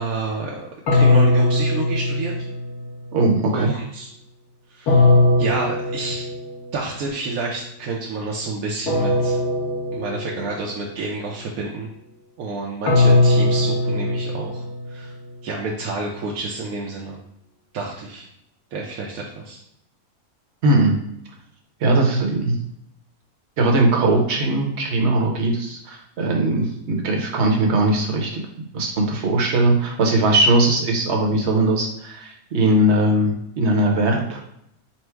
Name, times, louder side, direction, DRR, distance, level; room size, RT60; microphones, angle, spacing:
voice 1, 0.0-2.3 3.5-4.1 4.7-5.1 5.4-6.3 6.7-9.4 9.9-11.9 12.4-15.1 15.4-17.2 17.7-18.2 18.7-19.6, right 3 dB, 75° right, -3 dB, 1.0 m, -29 dB
sound 1, 0.9-2.9 4.9-6.7 8.9-10.7 12.9-15.1, left 2 dB, 85° left, 1.2 m, -19 dB
voice 2, 3.1-3.7 20.6-21.0 21.8-22.6 23.6-28.4 28.7-34.4, right 2 dB, 55° right, 1 dB, 1.0 m, -19 dB
4.3 x 2.0 x 4.5 m, 0.74 s
omnidirectional pair, 1.6 m